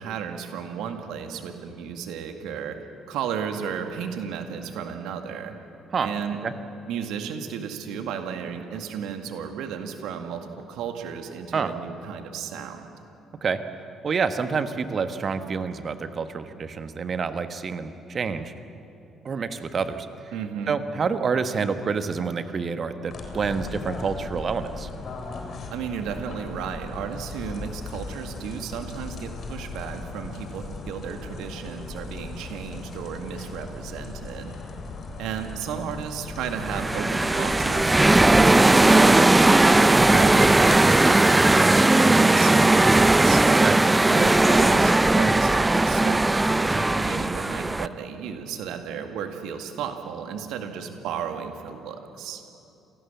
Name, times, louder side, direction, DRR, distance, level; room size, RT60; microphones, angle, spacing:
voice 1, 0.0-2.8 3.1-5.5 6.0-6.4 6.9-12.9 20.3-20.8 25.7-34.5 35.2-43.4 44.1-52.4, right 7 dB, 65° right, 6 dB, 2.1 m, -34 dB
voice 2, 14.0-18.5 19.2-20.1 20.7-24.9 43.6-43.8 44.1-44.6, right 5 dB, 45° right, 9 dB, 1.5 m, -28 dB
sound 1, 23.1-40.8, left 3 dB, 50° left, 3.8 m, -38 dB
sound 2, 36.5-47.9, right 2 dB, 15° right, 0.7 m, -18 dB
27.5 x 18.5 x 7.4 m, 2.7 s
figure-of-eight pair, 45°, 0 cm